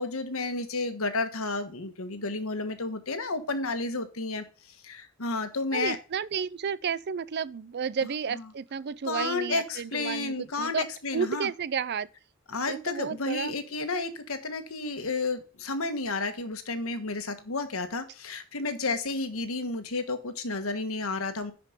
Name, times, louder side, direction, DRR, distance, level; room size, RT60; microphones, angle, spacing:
voice 1, 0.0-6.0 8.3-8.4 9.0-11.5 12.5-21.5, left 3 dB, 75° left, 1.5 m, -31 dB
voice 2, 5.7-10.9 11.1-12.1 12.7-13.5, right 6 dB, 50° right, 0.4 m, -32 dB
10.5 x 5.1 x 5.3 m
head